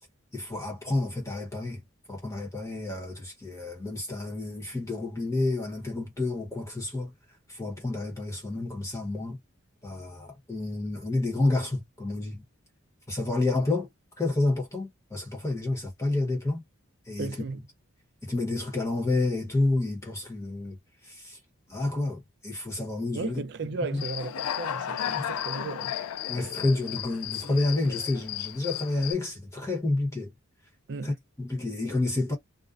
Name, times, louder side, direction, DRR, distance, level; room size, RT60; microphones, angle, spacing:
voice 1, 0.3-1.8 2.1-7.1 7.5-9.4 9.8-12.4 13.1-13.9 14.2-16.6 17.1-17.5 18.2-20.8 21.0-21.4 21.7-23.4 23.9-24.0 25.1-25.3 26.3-30.3 31.0-32.4, left 2 dB, 15° left, 0.9 m, -29 dB
voice 2, 17.2-17.6 23.1-25.9 30.9-31.1, right 3 dB, 50° right, 0.4 m, -35 dB
Human voice / Cricket, 24.0-29.1, left 10 dB, 90° left, 0.3 m, -34 dB
2.4 x 2.1 x 2.4 m
head